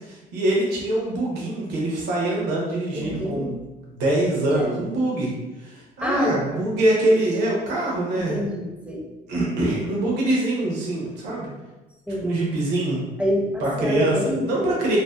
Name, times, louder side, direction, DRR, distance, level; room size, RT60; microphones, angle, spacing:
voice 1, 0.1-3.5 3.8-5.3 5.6-8.4 9.3-11.5 12.2-13.0 13.6-14.1 14.4-15.0, right 1 dB, 80° right, -4 dB, 0.7 m, -24 dB
voice 2, 2.9-3.5 4.5-4.7 6.0-6.7 8.1-9.0 12.1-12.3 13.2-14.7, equal, 5° right, -2 dB, 0.4 m, -27 dB
2.6 x 2.1 x 2.2 m, 1.1 s
cardioid pair, 110°, 17 cm